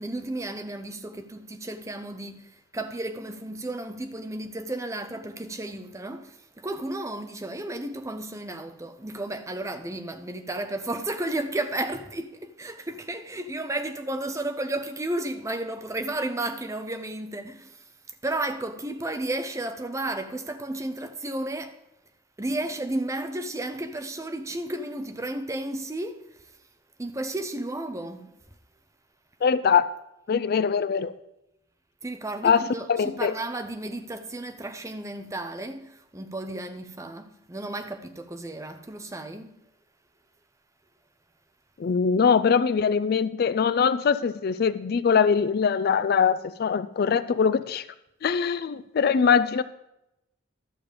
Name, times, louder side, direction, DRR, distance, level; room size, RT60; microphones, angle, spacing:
voice 1, 0.0-17.9 18.2-21.8 22.4-26.6 27.0-28.3 32.0-39.6, right 1 dB, 15° right, 0.6 m, -33 dB
voice 2, 29.4-29.9 30.3-31.1 32.4-33.3 41.8-47.8 48.2-49.6, left 6 dB, 50° left, 0.3 m, -22 dB
11.5 x 7.0 x 5.0 m
head